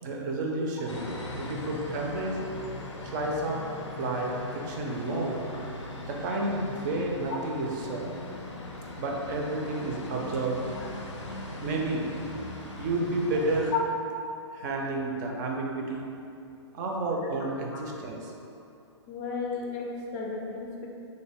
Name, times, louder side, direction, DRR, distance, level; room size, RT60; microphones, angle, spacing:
voice 1, 0.0-1.1 1.4-2.4 3.0-3.6 4.0-5.4 6.1-8.2 9.0-10.6 11.6-12.1 12.8-13.7 14.5-16.1 16.7-18.3, right 2 dB, 40° right, -1 dB, 0.4 m, -31 dB
sound 1, 0.9-13.8, left 2 dB, 85° left, 0.5 m, -40 dB
voice 2, 19.1-20.9, left 5 dB, 30° left, -2 dB, 0.4 m, -33 dB
3.0 x 2.0 x 3.3 m, 2.6 s
figure-of-eight pair, 120°, 15 cm